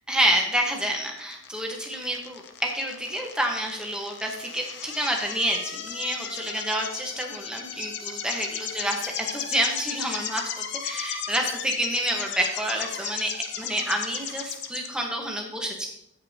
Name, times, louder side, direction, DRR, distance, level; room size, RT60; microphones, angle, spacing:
voice 1, 0.1-13.3 13.6-15.9, right 1 dB, 5° right, 0 dB, 1.2 m, -28 dB
sound 1, 0.5-14.9, left 8 dB, 50° left, 0.8 m, -35 dB
15.0 x 5.2 x 2.9 m, 0.77 s
head